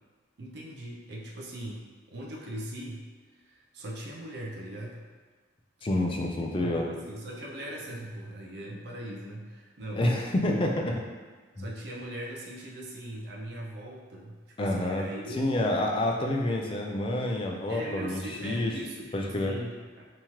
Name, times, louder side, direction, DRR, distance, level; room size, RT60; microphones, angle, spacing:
voice 1, 0.4-3.1 3.3-5.1 6.3-10.8 11.5-15.5 17.7-20.1, right 1 dB, 55° right, -2 dB, 0.4 m, -40 dB
voice 2, 5.8-6.9 10.0-10.9 11.6-11.7 14.6-15.0 15.3-18.7 19.1-19.5, left 1 dB, 25° left, 0 dB, 0.4 m, -28 dB
3.6 x 2.9 x 3.0 m, 1.4 s
head